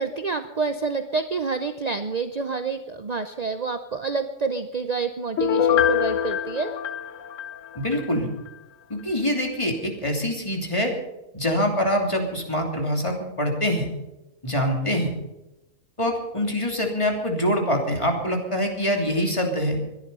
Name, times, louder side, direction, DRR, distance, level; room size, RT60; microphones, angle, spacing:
voice 1, 0.0-6.7, right 4 dB, 50° right, 8 dB, 0.5 m, -28 dB
Piano, 5.4-8.1 8.5-8.6, left 9 dB, 60° left, 1.1 m, -24 dB
voice 2, 7.7-8.3 8.9-10.9 11.3-13.9 14.4-15.1 16.0-19.8, equal, 20° left, 1 dB, 3.0 m, -24 dB
22.5 x 10.5 x 5.5 m, 0.95 s
omnidirectional pair, 1.7 m